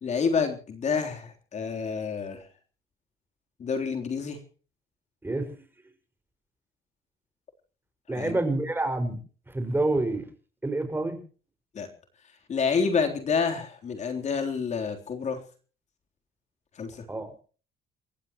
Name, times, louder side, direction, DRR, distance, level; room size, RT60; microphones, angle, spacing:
voice 1, 0.0-2.4 3.6-4.4 8.1-8.4 11.7-11.9 12.5-15.4 16.8-17.0, left 5 dB, 45° left, 5 dB, 3.6 m, -28 dB
voice 2, 5.2-5.5 8.1-9.2 9.5-10.3 10.6-11.2 17.1-17.3, right 2 dB, 10° right, 7 dB, 5.7 m, -27 dB
29.5 x 15.0 x 3.1 m, 0.40 s
cardioid pair, 110°, 17 cm